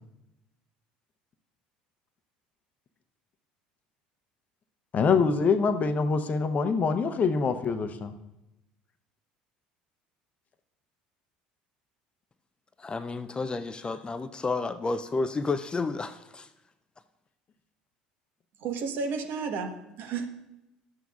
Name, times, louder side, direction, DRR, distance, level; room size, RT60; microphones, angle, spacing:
voice 1, 4.9-8.1, left 5 dB, 40° left, 0.8 m, -25 dB
voice 2, 12.8-16.5, left 3 dB, 20° left, 0.4 m, -31 dB
voice 3, 18.6-20.3, right 5 dB, 55° right, 1.2 m, -32 dB
12.0 x 8.0 x 2.4 m
hypercardioid pair, 65°, 4 cm